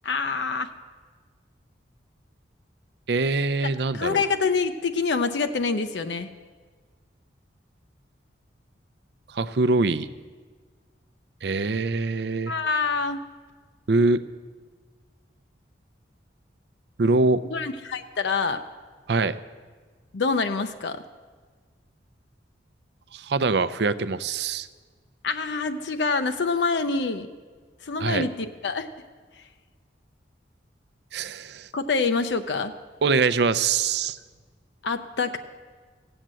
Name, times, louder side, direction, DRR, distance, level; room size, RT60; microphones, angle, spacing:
voice 1, 0.0-0.7 3.6-6.3 12.5-13.2 17.5-18.6 20.1-21.0 25.2-27.3 27.8-28.9 31.7-32.7 34.8-35.4, left 4 dB, 70° left, 8 dB, 0.6 m, -26 dB
voice 2, 3.1-4.2 9.3-10.1 11.4-12.5 13.9-14.2 17.0-17.4 19.1-19.4 23.1-24.7 28.0-28.3 31.1-31.7 33.0-34.2, right 3 dB, 65° right, 14 dB, 0.5 m, -23 dB
16.0 x 8.0 x 7.5 m, 1.5 s
head